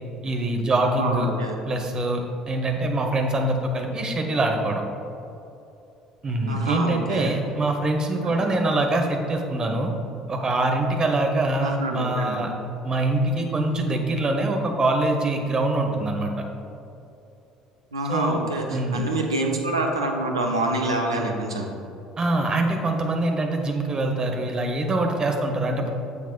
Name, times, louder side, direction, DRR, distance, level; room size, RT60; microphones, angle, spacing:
voice 1, 0.2-1.3 1.7-4.8 6.2-9.9 10.3-12.5 12.8-16.3 18.1-18.4 18.7-19.0 22.2-25.9, right 2 dB, 30° right, 3 dB, 1.1 m, -24 dB
voice 2, 0.8-1.6 6.5-7.3 8.2-8.4 11.6-12.4 17.9-21.6, right 2 dB, 80° right, 1 dB, 0.7 m, -26 dB
9.6 x 7.2 x 2.3 m, 2.8 s
figure-of-eight pair, 55°, 3 cm